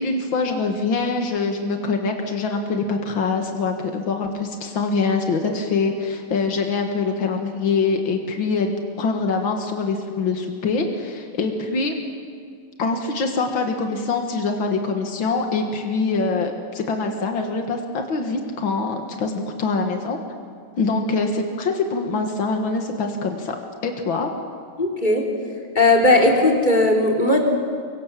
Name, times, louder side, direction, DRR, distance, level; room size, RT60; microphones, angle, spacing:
voice 1, 0.0-12.0 12.8-20.2 20.8-23.6 23.8-24.3, left 4 dB, 90° left, 4 dB, 2.5 m, -24 dB
voice 2, 24.8-25.3 25.8-27.4, left 2 dB, 25° left, 0 dB, 3.5 m, -17 dB
24.5 x 24.5 x 7.5 m, 2.1 s
omnidirectional pair, 2.1 m